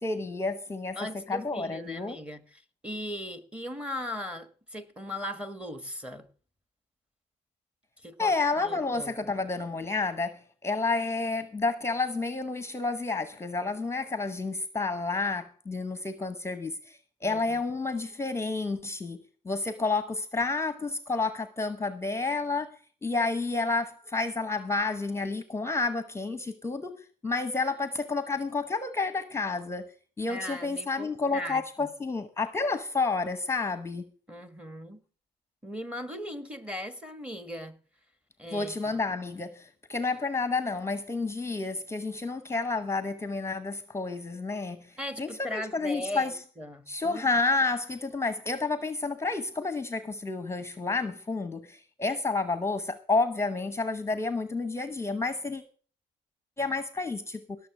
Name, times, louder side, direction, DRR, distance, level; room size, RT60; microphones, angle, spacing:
voice 1, 0.0-2.2 8.2-29.9 30.2-34.1 38.5-46.4 46.9-55.6 56.6-57.6, left 3 dB, 15° left, 0.9 m, -30 dB
voice 2, 1.0-6.3 8.0-9.3 17.2-17.6 30.3-31.9 34.3-35.0 35.6-37.8 38.4-39.0 45.0-47.2, left 1 dB, 5° right, 1.4 m, -38 dB
17.0 x 6.8 x 5.9 m
cardioid pair, 110°, 17 cm